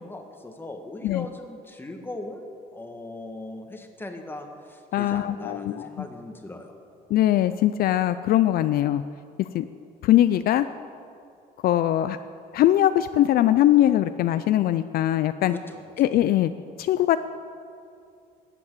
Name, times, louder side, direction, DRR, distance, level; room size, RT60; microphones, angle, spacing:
voice 1, 0.0-2.4 2.7-6.7 15.5-15.8, left 2 dB, 10° left, 4 dB, 1.5 m, -39 dB
voice 2, 4.9-6.0 7.1-9.0 9.4-9.7 10.0-10.7 11.6-12.2 12.5-15.5 16.0-16.5 16.8-17.2, left 13 dB, 65° left, 12 dB, 0.4 m, -21 dB
12.5 x 8.4 x 8.2 m, 2.4 s
cardioid pair, 110°, 17 cm